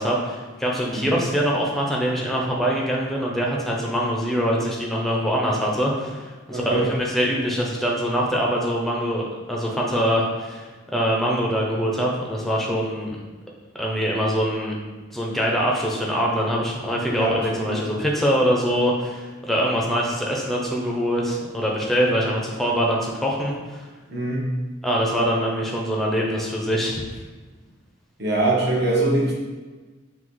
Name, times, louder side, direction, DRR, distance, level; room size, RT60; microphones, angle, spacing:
voice 1, 0.0-13.2 13.7-14.8 15.1-23.9 24.8-27.0, equal, ahead, -3 dB, 0.5 m, -24 dB
voice 2, 6.5-6.9 17.1-17.3 17.7-17.8 24.1-24.4 28.2-29.3, right 2 dB, 55° right, -4 dB, 1.1 m, -22 dB
5.8 x 2.3 x 3.0 m, 1.3 s
head